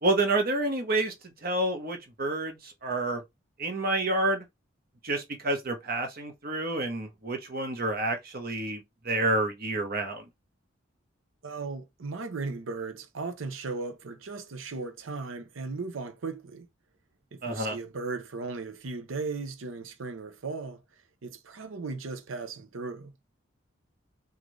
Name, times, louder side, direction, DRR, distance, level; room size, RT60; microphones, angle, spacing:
voice 1, 0.0-3.2 3.6-4.4 5.0-10.3 17.4-17.8, right 2 dB, 50° right, 1.0 m, -29 dB
voice 2, 11.4-16.7 17.3-23.1, right 3 dB, 90° right, 0.7 m, -37 dB
3.8 x 2.5 x 3.1 m
head